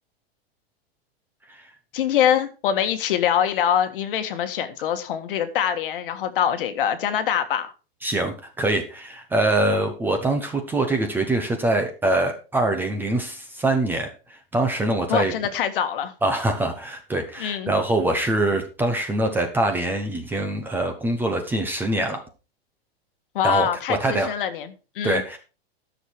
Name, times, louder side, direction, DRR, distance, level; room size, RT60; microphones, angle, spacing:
voice 1, 1.9-7.7 15.1-16.1 17.4-17.7 23.3-25.2, left 9 dB, 60° left, 9 dB, 1.6 m, -24 dB
voice 2, 8.0-15.3 16.2-22.2 23.4-24.3 25.0-25.4, right 2 dB, 5° right, 5 dB, 0.8 m, -24 dB
13.0 x 6.5 x 4.6 m, 0.34 s
supercardioid pair, 165°, 31 cm